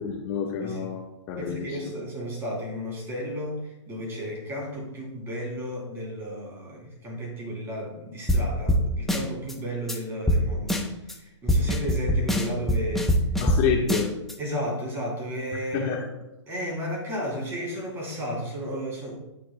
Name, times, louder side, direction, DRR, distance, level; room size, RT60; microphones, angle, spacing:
voice 1, 0.0-1.8 13.4-14.1 15.7-16.0, left 6 dB, 30° left, -1 dB, 1.3 m, -28 dB
voice 2, 1.4-3.6 3.9-10.8 11.1-13.1 14.4-16.0 16.5-19.2, equal, 15° right, -1 dB, 3.1 m, -33 dB
sound 1, 8.3-8.4 8.7-8.8 9.1-9.5 9.9-10.0 10.3-10.4 10.7-11.1 11.5-13.6 13.9-14.3, equal, ahead, 0.7 m, -23 dB
11.0 x 9.5 x 2.2 m, 0.92 s
hypercardioid pair, 145°, 16 cm